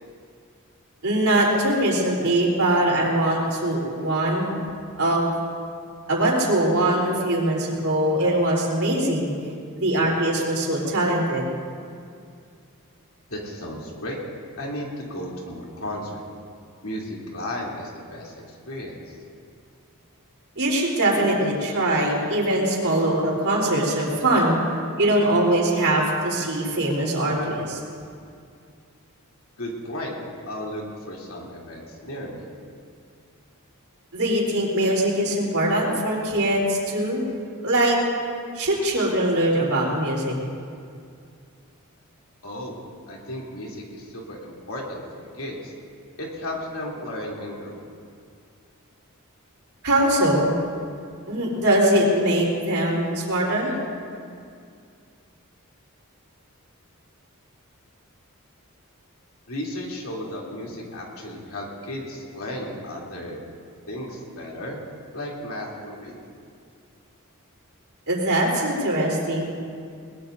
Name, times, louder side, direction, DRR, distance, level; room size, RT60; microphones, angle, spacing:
voice 1, 1.0-4.6 5.0-5.3 6.1-9.3 9.7-11.4 20.6-24.6 25.0-27.8 34.1-37.2 37.6-38.0 38.5-40.4 49.8-50.5 51.3-53.7 68.1-69.5, right 1 dB, 75° right, -3 dB, 3.7 m, -22 dB
voice 2, 13.3-14.2 14.6-16.2 16.8-19.1 29.6-30.1 30.5-32.5 42.4-42.8 43.1-45.7 46.2-47.8 59.5-63.4 63.9-64.8 65.1-66.2, left 1 dB, 70° left, -3 dB, 3.1 m, -34 dB
21.5 x 20.5 x 2.7 m, 2.3 s
head